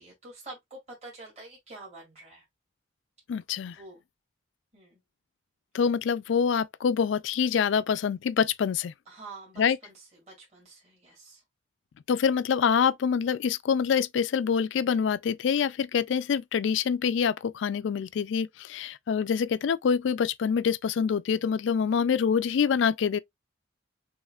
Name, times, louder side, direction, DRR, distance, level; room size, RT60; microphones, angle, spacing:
voice 1, 0.0-2.4 3.6-4.0 4.7-5.0 9.1-11.4 22.0-22.1, right 2 dB, 35° right, 2.6 m, -47 dB
voice 2, 3.3-3.8 5.7-8.9 9.6-9.8 12.1-23.2, left 6 dB, 70° left, 0.3 m, -26 dB
6.3 x 3.1 x 2.3 m
head